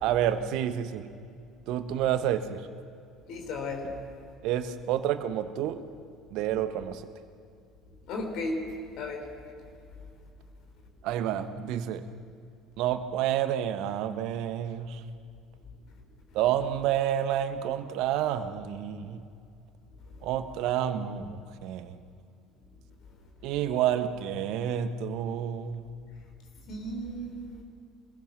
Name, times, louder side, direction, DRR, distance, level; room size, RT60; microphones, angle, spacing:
voice 1, 0.0-1.1 1.7-2.7 4.4-5.8 6.3-7.0 11.0-12.1 12.8-15.0 16.3-19.2 20.2-22.0 23.4-25.9, right 10 dB, 60° right, 11 dB, 1.2 m, -29 dB
voice 2, 3.3-3.9 8.1-8.7 9.0-9.2 26.7-27.6, left 2 dB, 55° left, 3 dB, 3.6 m, -34 dB
27.0 x 22.0 x 6.0 m, 2.4 s
figure-of-eight pair, 60°, 0 cm